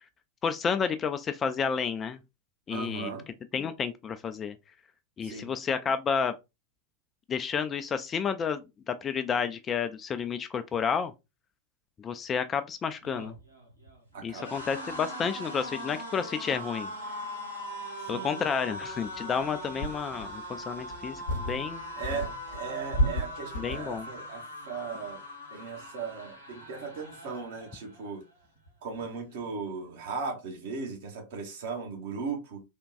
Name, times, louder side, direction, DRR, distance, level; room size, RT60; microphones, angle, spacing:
voice 1, 0.4-2.2 2.7-3.1 3.5-4.6 5.2-6.3 7.3-11.1 12.0-13.3 14.2-16.9 18.1-21.8 23.6-24.1, left 6 dB, 25° left, 0.3 m, -31 dB
voice 2, 2.7-3.3 5.2-5.5 14.1-14.5 18.1-18.4 22.0-25.2 25.5-28.2 28.8-32.6, right 5 dB, 55° right, 1.1 m, -37 dB
sound 1, 12.9-28.1 28.4-28.7 28.9-29.7, equal, 85° right, 1.3 m, -41 dB
sound 2, 19.2-19.3 19.8-20.4 20.9-21.8 22.0-24.0, equal, 60° left, 0.8 m, -31 dB
3.5 x 2.2 x 2.4 m
figure-of-eight pair, 90°, 0 cm